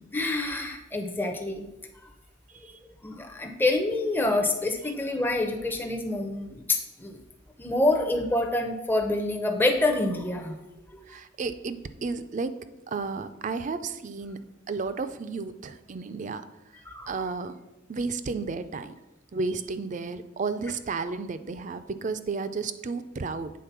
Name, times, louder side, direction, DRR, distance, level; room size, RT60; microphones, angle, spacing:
voice 1, 0.1-1.7 3.0-7.2 7.6-10.6 16.9-17.3, left 2 dB, 10° left, 3 dB, 0.6 m, -27 dB
voice 2, 11.0-12.6 12.9-14.4 14.7-16.4 17.1-17.6 17.9-19.0 19.3-23.5, right 4 dB, 40° right, 11 dB, 0.4 m, -32 dB
8.4 x 3.7 x 5.8 m, 0.98 s
head